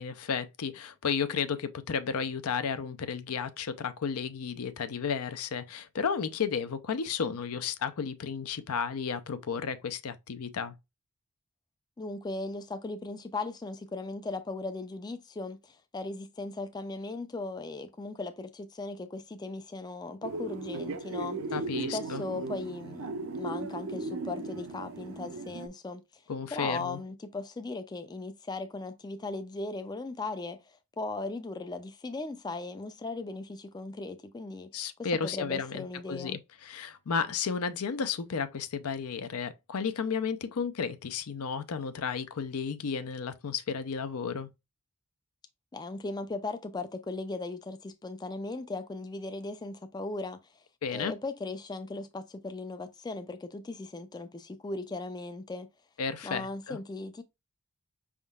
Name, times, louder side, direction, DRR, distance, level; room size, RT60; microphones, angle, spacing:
voice 1, 0.0-10.8 21.5-22.2 26.3-27.0 34.7-44.5 50.8-51.1 56.0-56.8, left 6 dB, 80° left, 0.5 m, -33 dB
voice 2, 12.0-21.4 21.9-26.2 26.5-34.7 35.2-36.4 45.7-50.4 50.9-55.7 56.2-57.2, left 3 dB, 20° left, 0.3 m, -38 dB
sound 1, 20.2-25.7, right 3 dB, 65° right, 0.6 m, -37 dB
5.3 x 3.6 x 2.3 m
head